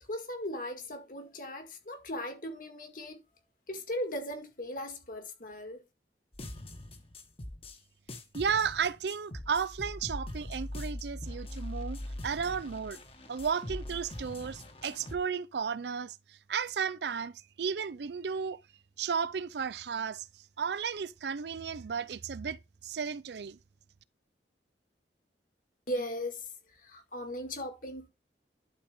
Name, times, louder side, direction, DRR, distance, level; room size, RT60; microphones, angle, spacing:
voice 1, 0.1-3.2 3.7-5.8 25.9-28.1, left 1 dB, 50° left, 2.0 m, -38 dB
sound 1, 6.3-7.8 8.1-15.2, left 1 dB, 35° left, 1.3 m, -42 dB
voice 2, 8.3-13.0 13.3-18.6 19.0-20.3 20.6-23.6, right 6 dB, 70° right, 0.5 m, -34 dB
11.5 x 4.2 x 3.5 m
head